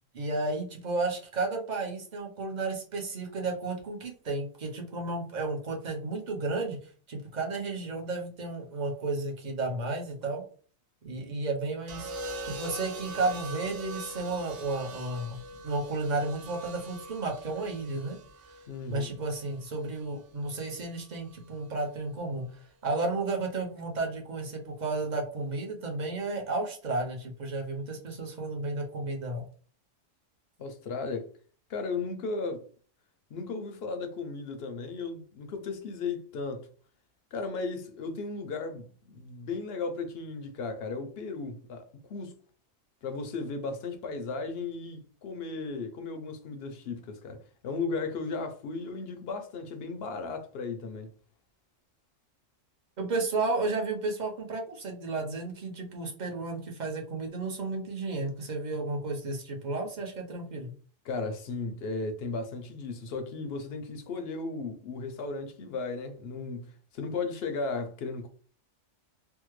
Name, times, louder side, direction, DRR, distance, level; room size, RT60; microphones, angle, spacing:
voice 1, 0.1-10.4 11.0-12.1 12.4-18.2 18.9-29.4 53.0-60.8, right 3 dB, 40° right, 0.7 m, -33 dB
sound 1, 11.9-20.0 21.3-21.6, right 2 dB, 70° right, 0.9 m, -42 dB
voice 2, 18.7-19.1 30.6-31.3 31.7-32.6 33.3-36.7 37.3-42.3 43.0-51.1 61.0-68.3, left 4 dB, 65° left, 0.7 m, -35 dB
3.5 x 2.2 x 3.0 m
omnidirectional pair, 1.4 m